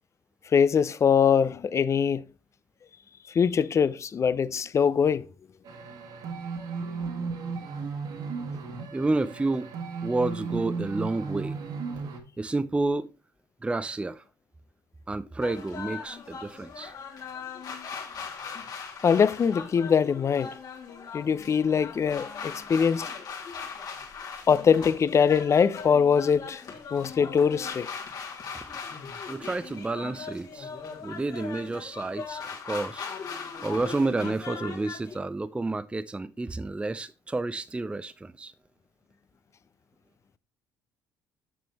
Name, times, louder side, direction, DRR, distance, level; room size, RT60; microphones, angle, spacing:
voice 1, 0.5-2.2 3.3-5.3 19.0-20.6 21.1-23.1 24.5-26.6 26.9-27.9, left 7 dB, 35° left, 0.6 m, -22 dB
sound 1, 5.7-12.2, right 4 dB, 65° right, 1.9 m, -35 dB
voice 2, 8.9-9.7 10.0-11.6 12.4-13.1 13.6-14.2 15.1-16.9 29.3-30.7 31.0-33.1 33.4-38.5, right 2 dB, 15° right, 0.5 m, -30 dB
sound 2, 15.4-35.2, left 5 dB, 55° left, 2.3 m, -39 dB
7.0 x 6.3 x 4.2 m
hypercardioid pair, 60°, 8 cm